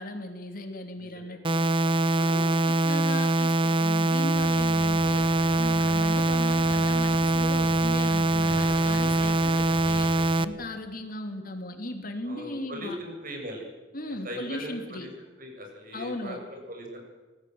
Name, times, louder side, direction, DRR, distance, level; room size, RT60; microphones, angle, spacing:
voice 1, 0.0-1.6 2.1-5.2 5.6-10.1 10.4-13.0 13.9-15.1 15.9-16.4, left 1 dB, 50° left, 5 dB, 3.3 m, -37 dB
voice 2, 1.0-1.4 12.3-13.7 14.1-15.1 15.4-17.0, equal, 50° right, 2 dB, 7.8 m, -40 dB
sound 1, 1.4-10.4, right 2 dB, 30° right, 0.9 m, -23 dB
sound 2, 4.3-10.3, right 1 dB, 70° right, 7.0 m, -40 dB
26.0 x 19.5 x 8.0 m, 1.3 s
head